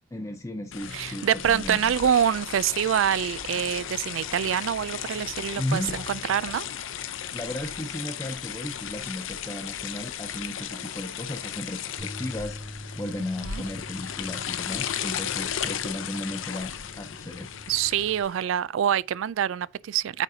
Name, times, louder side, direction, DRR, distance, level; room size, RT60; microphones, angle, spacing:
voice 1, 0.1-1.9 5.6-6.0 7.3-12.6 13.0-17.6, left 1 dB, 15° left, 0.5 m, -35 dB
sound 1, 0.7-18.4, left 9 dB, 80° left, 0.6 m, -35 dB
voice 2, 0.9-6.7 13.4-13.6 17.7-20.2, right 9 dB, 80° right, 0.3 m, -25 dB
Bass guitar, 12.0-18.2, equal, 30° right, 2.5 m, -45 dB
9.0 x 4.0 x 2.7 m
head